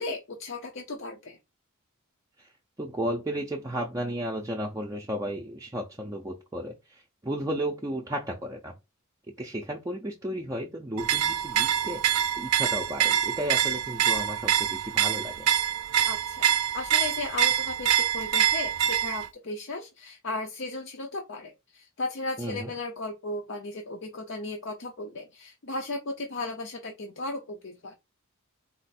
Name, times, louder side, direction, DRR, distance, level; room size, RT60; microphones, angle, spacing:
voice 1, 0.0-1.4 16.0-27.9, left 2 dB, 55° left, 0.6 m, -36 dB
voice 2, 2.8-8.7 9.4-15.5 22.4-22.7, right 1 dB, 15° right, 0.5 m, -34 dB
Railroad crossing, 11.0-19.3, right 9 dB, 85° right, 0.5 m, -25 dB
4.3 x 2.5 x 4.1 m
head